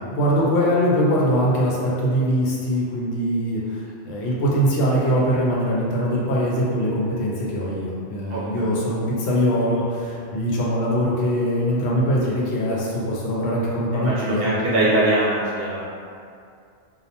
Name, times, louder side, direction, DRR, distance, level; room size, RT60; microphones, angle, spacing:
voice 1, 0.0-14.5, equal, 70° left, -5 dB, 0.8 m, -22 dB
voice 2, 13.9-15.9, right 1 dB, 60° right, -8 dB, 0.8 m, -22 dB
2.3 x 2.1 x 2.8 m, 2.3 s
omnidirectional pair, 1.2 m